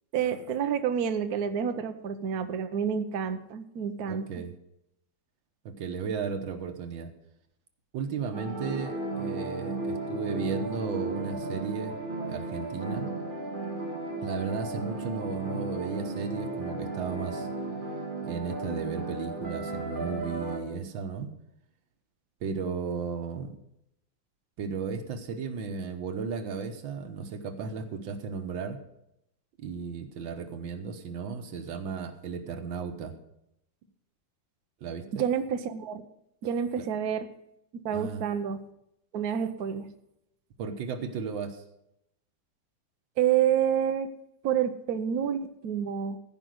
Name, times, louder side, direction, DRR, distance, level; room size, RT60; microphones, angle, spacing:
voice 1, 0.1-4.4 35.1-36.0 36.4-37.3 37.8-38.6 39.1-39.9 43.2-44.1 44.4-46.2, right 8 dB, 60° right, 9 dB, 1.2 m, -28 dB
voice 2, 4.1-4.5 5.7-7.1 7.9-12.0 12.3-13.1 14.2-17.5 18.2-21.3 22.4-23.6 24.6-28.8 29.6-33.1 34.8-35.2 36.8-36.9 37.9-38.3 40.6-41.6, right 5 dB, 85° right, 7 dB, 1.9 m, -35 dB
sound 1, 8.3-20.6, right 2 dB, 25° right, 1.8 m, -35 dB
15.0 x 5.3 x 7.8 m, 0.81 s
omnidirectional pair, 2.0 m